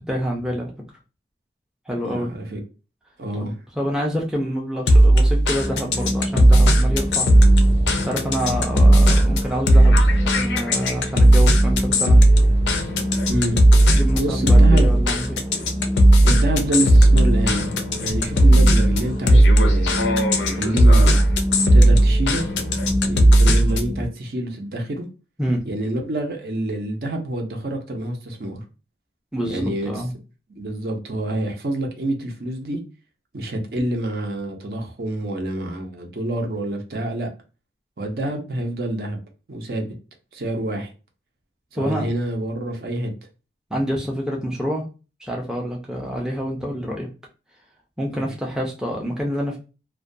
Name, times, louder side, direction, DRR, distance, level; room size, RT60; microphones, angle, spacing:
voice 1, 0.1-0.7 1.9-2.3 3.4-3.5 3.8-7.3 8.0-12.2 13.9-15.4 25.4-25.6 29.3-30.1 41.8-42.0 43.7-44.8 45.2-47.1 48.0-49.6, equal, 5° right, 0.4 m, -27 dB
voice 2, 2.0-2.6 3.2-3.5 13.3-13.9 14.2-14.9 16.2-17.7 18.0-21.2 21.7-22.4 23.0-25.1 25.6-28.6 29.4-30.0 30.5-32.8 33.3-37.3 38.0-39.2 39.5-39.9 40.3-40.9 41.7-43.1 48.1-48.3, right 1 dB, 60° right, 0.6 m, -27 dB
sound 1, 4.9-23.9, right 1 dB, 85° left, 0.5 m, -15 dB
sound 2, 5.6-24.1, equal, 30° right, 0.8 m, -28 dB
2.3 x 2.2 x 2.5 m
head